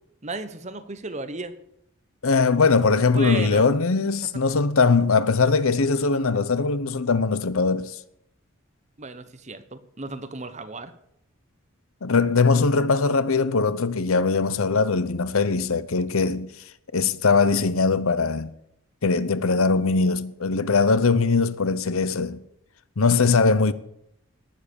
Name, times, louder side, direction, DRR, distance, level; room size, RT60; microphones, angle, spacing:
voice 1, 0.2-1.5 3.1-3.7 9.0-10.9, right 3 dB, 35° right, 1.1 m, -34 dB
voice 2, 2.2-8.0 12.0-16.5 16.9-18.5 19.0-22.4 23.0-23.7, left 4 dB, 75° left, 0.8 m, -21 dB
18.5 x 7.5 x 8.4 m
head